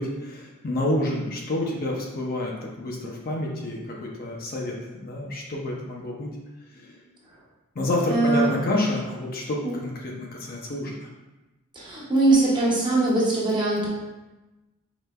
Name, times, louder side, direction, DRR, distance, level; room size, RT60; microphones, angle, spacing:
voice 1, 0.0-6.3 6.8-6.9 7.8-11.1, left 1 dB, 45° left, -2 dB, 0.5 m, -29 dB
voice 2, 8.1-8.5 9.6-9.7 11.7-13.9, right 2 dB, 20° right, -6 dB, 1.0 m, -21 dB
4.9 x 3.3 x 2.2 m, 1.1 s
head